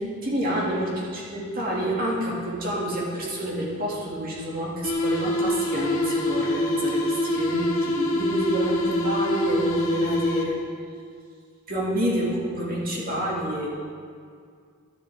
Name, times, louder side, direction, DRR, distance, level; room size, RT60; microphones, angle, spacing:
voice 1, 0.0-10.6 11.7-13.7, right 1 dB, 45° right, -4 dB, 2.2 m, -28 dB
sound 1, 4.8-10.8, left 1 dB, 85° left, 1.1 m, -25 dB
13.0 x 7.2 x 3.6 m, 2.1 s
head